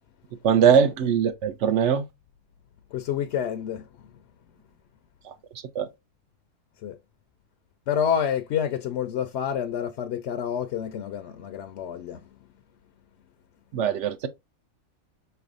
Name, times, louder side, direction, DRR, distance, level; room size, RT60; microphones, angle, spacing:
voice 1, 0.4-2.0 5.3-5.4 5.7-5.9 13.7-14.3, right 7 dB, 65° right, 0.9 m, -21 dB
voice 2, 2.9-3.9 6.8-7.0 7.9-12.3, left 8 dB, 65° left, 0.7 m, -28 dB
5.4 x 3.4 x 2.4 m
omnidirectional pair, 1.4 m